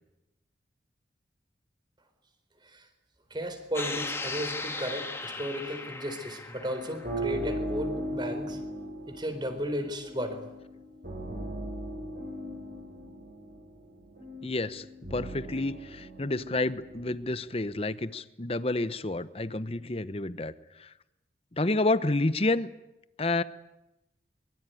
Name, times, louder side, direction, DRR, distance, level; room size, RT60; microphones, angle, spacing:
voice 1, 3.3-8.6 9.1-10.4, equal, 25° right, 8 dB, 4.1 m, -34 dB
sound 1, 3.7-7.5, left 3 dB, 15° left, 2.0 m, -37 dB
sound 2, 6.6-17.7, right 1 dB, 60° right, 7.8 m, -38 dB
voice 2, 14.4-14.9 15.1-20.5 20.8-20.9 21.5-22.7 23.2-23.4, left 2 dB, 35° left, 14 dB, 0.9 m, -29 dB
23.5 x 23.5 x 9.3 m, 0.96 s
head